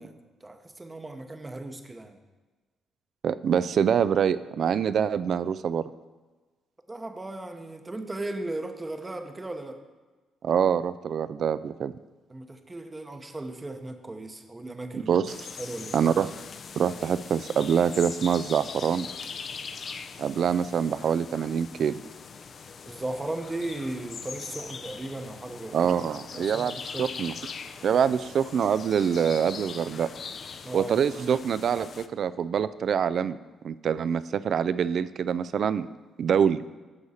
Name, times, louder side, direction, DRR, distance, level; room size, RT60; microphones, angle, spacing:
voice 1, 0.0-2.2 6.9-9.8 12.3-15.2 15.6-16.1 22.9-25.9 26.3-27.1 30.6-31.0, right 2 dB, 20° right, 7 dB, 0.8 m, -36 dB
voice 2, 3.2-5.9 10.4-11.9 14.9-15.3 15.9-16.3 16.8-19.1 20.2-21.9 25.7-27.3 27.8-30.1 30.7-33.4 33.6-35.9 36.2-36.6, right 7 dB, 60° right, 15 dB, 0.3 m, -25 dB
sound 1, 15.3-32.1, left 5 dB, 50° left, 0.5 m, -41 dB
9.7 x 6.4 x 4.2 m, 1.3 s
cardioid pair, 90°, 0 cm